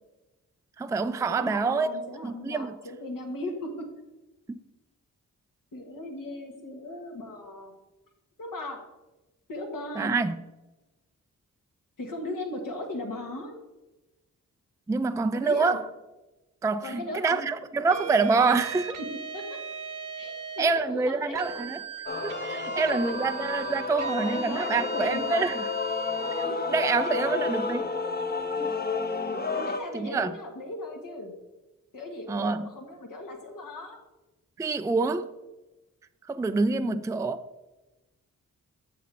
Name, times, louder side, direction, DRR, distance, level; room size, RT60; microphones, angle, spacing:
voice 1, 0.8-1.9 2.2-2.7 4.5-4.6 10.0-10.4 14.9-15.9 16.6-19.0 20.6-21.8 22.2-25.6 26.4-27.8 28.6-28.7 29.9-30.3 32.3-32.6 34.6-35.3 36.3-37.4, right 4 dB, 10° right, 0.3 m, -26 dB
voice 2, 1.3-3.9 5.7-7.7 8.4-8.8 9.5-10.2 12.0-13.5 15.3-15.8 16.8-17.5 17.8-17.9 19.0-19.6 20.2-21.6 22.5-22.8 24.0-25.5 26.4-26.6 27.0-27.5 29.5-31.3 31.9-34.0 35.1-35.3 36.8-37.0, left 1 dB, 70° left, 1.7 m, -37 dB
sound 1, 17.9-20.8 21.3-26.5, right 5 dB, 65° right, 1.0 m, -39 dB
Male singing / Female singing / Musical instrument, 22.1-29.8, left 3 dB, 30° left, 0.8 m, -31 dB
7.4 x 7.0 x 3.5 m
cardioid pair, 45°, 34 cm